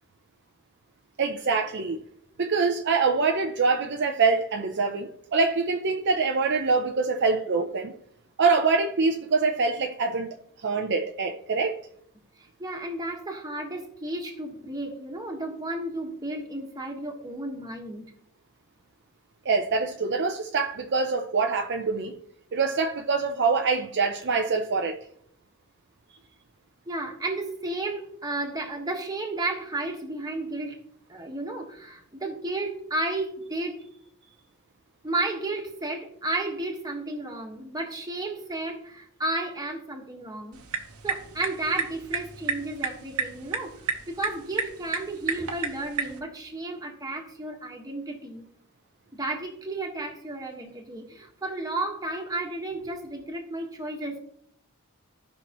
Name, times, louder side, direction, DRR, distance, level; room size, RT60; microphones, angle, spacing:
voice 1, 1.2-2.0 2.4-7.9 8.4-10.3 10.6-11.8 19.5-22.1 22.5-25.0, right 4 dB, 50° right, 0.6 m, -25 dB
voice 2, 12.4-18.1 26.9-30.8 31.1-33.8 35.0-40.6 41.0-48.5 49.1-54.2, right 2 dB, 15° right, 1.4 m, -33 dB
sound 1, 40.5-46.2, right 5 dB, 85° right, 1.1 m, -32 dB
15.5 x 5.7 x 3.0 m
head